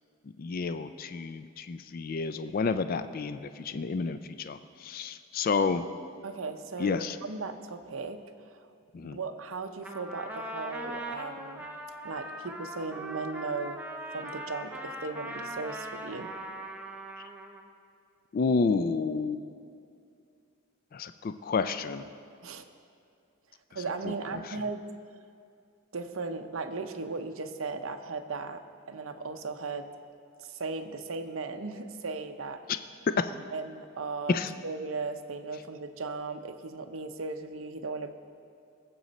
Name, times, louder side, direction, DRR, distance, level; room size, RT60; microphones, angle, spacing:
voice 1, 0.4-5.9 6.8-7.2 8.9-9.2 18.3-19.4 20.9-22.1 23.7-24.1 24.4-24.6 33.2-33.3 34.3-34.5, left 4 dB, 40° left, 10 dB, 0.3 m, -30 dB
voice 2, 6.2-8.2 9.0-11.7 12.0-13.8 14.1-16.3 22.4-22.6 23.7-24.9 25.9-28.6 28.9-29.9 30.4-32.6 33.5-34.4 34.6-38.1, right 4 dB, 70° right, 7 dB, 0.7 m, -37 dB
Trumpet, 9.8-17.7, right 1 dB, 5° right, 0.7 m, -40 dB
19.5 x 7.6 x 4.1 m, 2.4 s
head